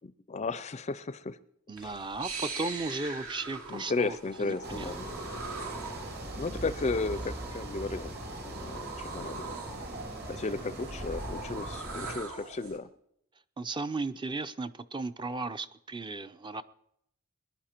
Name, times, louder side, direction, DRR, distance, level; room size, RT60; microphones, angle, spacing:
voice 1, 0.0-1.4 1.8-2.0 3.7-5.1 6.4-8.2 8.4-9.6 10.3-12.9, left 3 dB, 30° left, 16 dB, 0.4 m, -34 dB
voice 2, 1.7-4.9 13.6-16.6, right 3 dB, 20° right, 12 dB, 0.5 m, -36 dB
sound 1, 1.8-12.8, right 3 dB, 70° right, 2.3 m, -42 dB
sound 2, 4.6-12.2, right 1 dB, 45° right, 2.4 m, -40 dB
22.0 x 11.0 x 4.4 m, 0.73 s
head